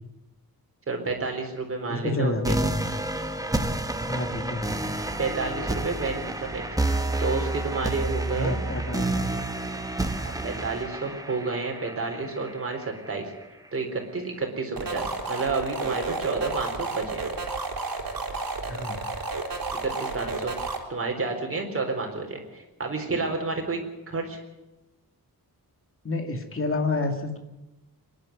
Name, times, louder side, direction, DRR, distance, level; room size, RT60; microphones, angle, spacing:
voice 1, 0.9-2.6 5.2-6.6 7.2-8.6 10.2-13.3 13.7-17.3 19.8-20.5 20.9-23.8 24.1-24.4, right 3 dB, 35° right, 2 dB, 4.1 m, -30 dB
voice 2, 1.9-2.6 4.0-4.6 8.4-9.2 18.7-19.0 26.0-27.4, left 2 dB, 35° left, 5 dB, 2.3 m, -29 dB
sound 1, 2.4-13.4, right 2 dB, 10° right, 1.1 m, -29 dB
sound 2, 14.8-20.8, right 3 dB, 65° right, 3.5 m, -31 dB
24.5 x 11.5 x 9.6 m, 0.98 s
wide cardioid pair, 170°, 37 cm